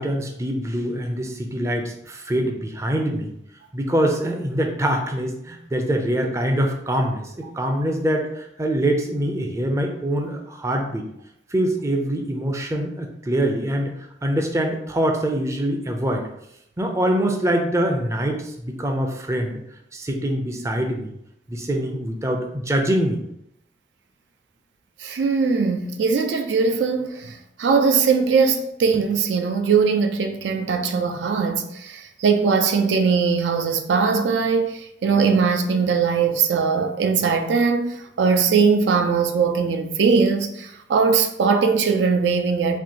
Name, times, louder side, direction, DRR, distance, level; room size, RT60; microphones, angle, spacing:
voice 1, 0.0-3.3 3.7-11.1 11.5-13.9 14.2-16.3 16.8-19.6 19.9-21.1 21.5-23.2, right 1 dB, 15° right, 0.4 m, -24 dB
voice 2, 25.0-42.8, right 5 dB, 85° right, 0.4 m, -20 dB
4.3 x 2.6 x 2.8 m
head